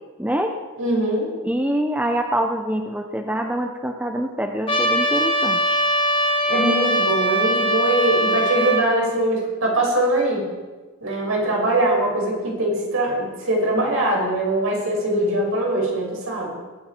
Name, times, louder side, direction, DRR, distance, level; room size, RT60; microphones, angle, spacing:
voice 1, 0.2-0.5 1.4-5.8, right 1 dB, 5° right, 4 dB, 0.8 m, -25 dB
voice 2, 0.8-1.3 6.5-10.5 11.0-16.6, right 1 dB, 75° right, -2 dB, 6.1 m, -22 dB
Trumpet, 4.7-8.9, right 1 dB, 25° left, 1.6 m, -21 dB
22.0 x 13.0 x 4.6 m, 1.3 s
head